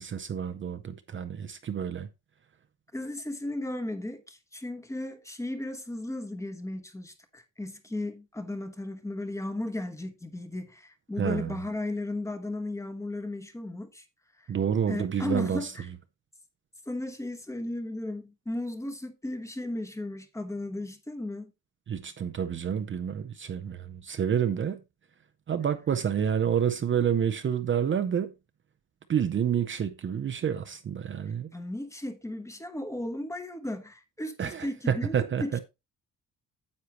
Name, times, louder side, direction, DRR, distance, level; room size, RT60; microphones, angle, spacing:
voice 1, 0.0-2.1 11.2-11.6 14.5-15.7 21.9-24.8 25.5-28.3 29.1-31.5 34.4-35.6, right 8 dB, 35° right, 0.6 m, -29 dB
voice 2, 2.9-14.0 14.4-14.5 14.9-15.9 16.9-21.5 31.5-35.6, left 1 dB, 10° left, 1.0 m, -35 dB
9.6 x 8.3 x 2.9 m
wide cardioid pair, 175°, 33 cm